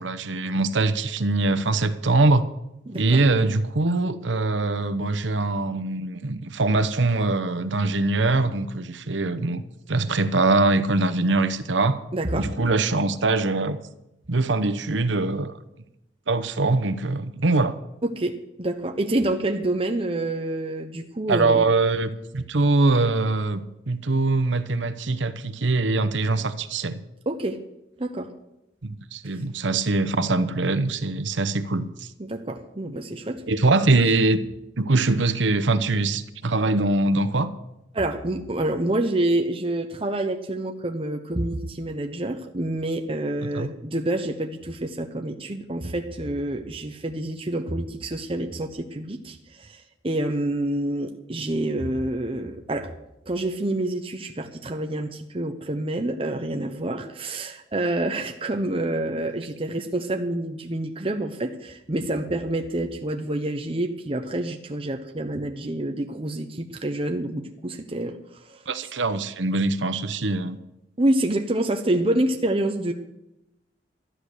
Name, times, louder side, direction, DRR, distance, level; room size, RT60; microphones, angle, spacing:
voice 1, 0.0-2.5 2.9-9.6 9.9-12.0 12.3-13.8 14.3-15.5 16.3-17.8 21.3-27.0 28.8-32.1 33.5-34.4 34.8-37.5 43.5-43.7 68.7-70.6, right 2 dB, 75° right, 0.9 m, -23 dB
voice 2, 2.9-3.2 12.1-12.5 18.0-21.6 27.3-27.6 28.0-28.3 32.2-33.4 37.9-52.9 53.3-68.2 68.5-68.9 71.0-72.9, right 1 dB, 30° right, 0.8 m, -27 dB
13.0 x 10.0 x 6.5 m
head